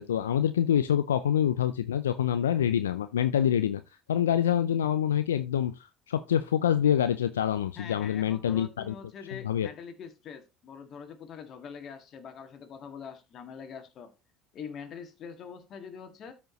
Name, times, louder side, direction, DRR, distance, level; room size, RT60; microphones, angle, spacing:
voice 1, 0.0-3.8 4.1-8.9 9.4-9.7, left 9 dB, 90° left, 0.4 m, -26 dB
voice 2, 7.8-14.1 14.5-16.3, left 6 dB, 50° left, 2.0 m, -44 dB
13.0 x 5.2 x 3.1 m
hypercardioid pair, 65°, 0 cm